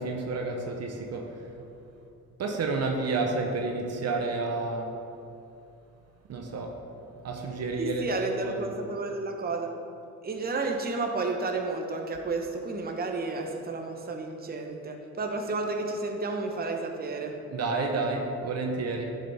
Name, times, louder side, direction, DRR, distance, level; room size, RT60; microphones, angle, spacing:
voice 1, 0.0-1.4 2.4-5.0 6.3-6.8 7.2-8.2 8.4-8.7 17.5-19.1, right 3 dB, 55° right, 3 dB, 0.9 m, -30 dB
voice 2, 7.8-9.7 10.2-17.4, right 3 dB, 30° right, 3 dB, 0.9 m, -31 dB
10.0 x 6.6 x 3.4 m, 2.6 s
cardioid pair, 90°, 30 cm